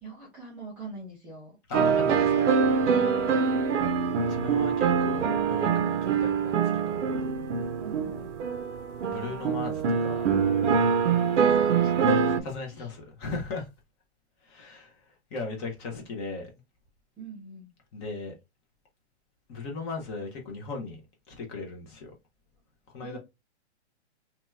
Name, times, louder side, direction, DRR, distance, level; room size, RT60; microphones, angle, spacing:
voice 1, 0.0-1.6 7.8-8.5 10.8-12.5 12.7-12.9 17.2-17.7 23.0-23.2, right 3 dB, 5° right, 0.5 m, -43 dB
voice 2, 1.7-2.6 4.3-7.1 9.0-10.4 11.8-11.9 12.4-13.7 14.4-16.5 17.9-18.4 19.5-21.0 21.3-22.1 22.9-23.2, left 3 dB, 25° left, 0.8 m, -37 dB
sound 1, 1.7-12.4, right 6 dB, 80° right, 0.8 m, -24 dB
2.8 x 2.4 x 3.1 m
hypercardioid pair, 155°, 35 cm